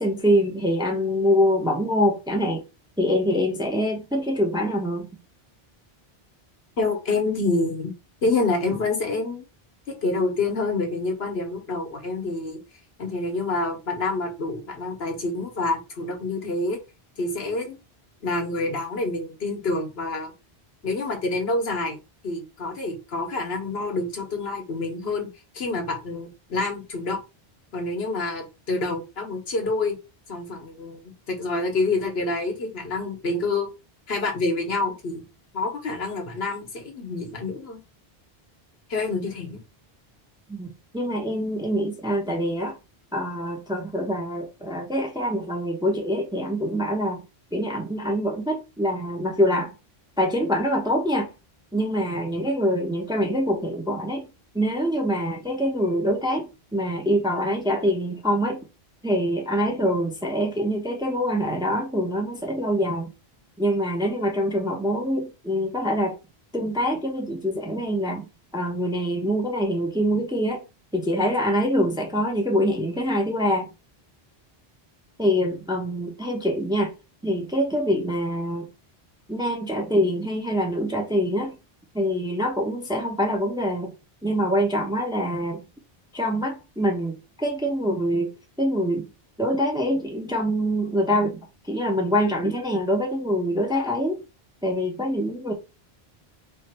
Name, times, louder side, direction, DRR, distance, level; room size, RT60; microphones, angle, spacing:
voice 1, 0.0-2.7 3.0-5.1 40.5-40.7 40.9-42.8 43.1-47.2 47.5-49.7 50.2-51.3 51.7-54.3 54.5-58.6 59.0-63.1 63.6-66.2 66.5-70.6 70.9-73.7 75.2-76.9 77.2-78.7 79.3-81.6 81.9-83.9 84.2-85.6 86.1-88.3 88.6-89.1 89.4-91.4 91.7-94.2 94.6-95.5, equal, 5° right, 0.6 m, -24 dB
voice 2, 6.8-7.9 8.2-9.4 9.9-12.6 13.0-16.8 17.2-17.8 18.2-20.3 20.8-22.0 22.2-25.3 25.5-27.2 27.7-29.9 30.3-33.7 34.1-35.2 35.5-37.8 38.9-39.6, left 3 dB, 75° left, 1.4 m, -27 dB
3.2 x 2.5 x 4.3 m
omnidirectional pair, 1.0 m